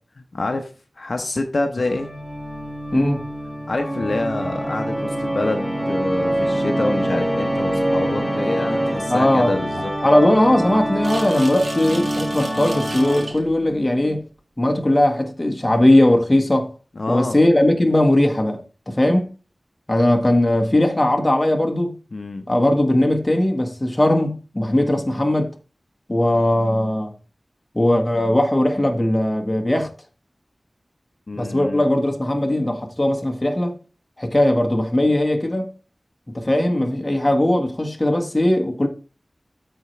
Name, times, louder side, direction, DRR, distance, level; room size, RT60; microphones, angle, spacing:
voice 1, 0.2-0.7 1.0-2.1 3.7-10.0 17.0-17.5 22.1-22.5 31.3-31.8, left 2 dB, 65° left, 0.9 m, -26 dB
Organ, 1.8-13.6, right 1 dB, 15° right, 2.1 m, -25 dB
voice 2, 9.1-9.6 10.0-14.2 14.6-16.7 17.1-18.6 18.9-19.3 19.9-21.9 22.5-25.5 26.1-27.1 27.7-29.9 31.4-33.7 34.2-35.7 36.3-38.9, left 1 dB, 25° left, 1.5 m, -19 dB
sound 1, 11.0-13.4, right 2 dB, 80° right, 2.2 m, -36 dB
13.5 x 4.5 x 3.3 m
wide cardioid pair, 75°, 0 cm